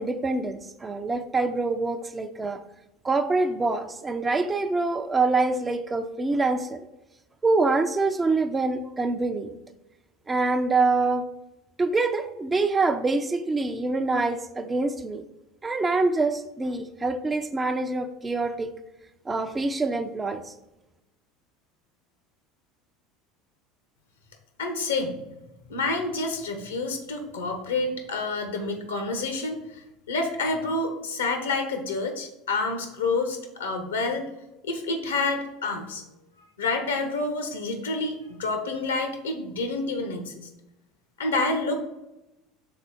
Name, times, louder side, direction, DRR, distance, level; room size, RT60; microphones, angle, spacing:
voice 1, 0.0-2.6 3.0-6.9 7.4-9.5 10.3-11.3 11.8-15.2 15.6-18.7 19.3-20.5, right 3 dB, 20° right, 8 dB, 0.5 m, -25 dB
voice 2, 24.6-25.2 25.7-34.3 34.6-36.0 36.6-40.5 41.2-41.8, left 3 dB, 75° left, 6 dB, 1.0 m, -28 dB
5.8 x 4.0 x 4.2 m, 0.96 s
figure-of-eight pair, 70°, 0 cm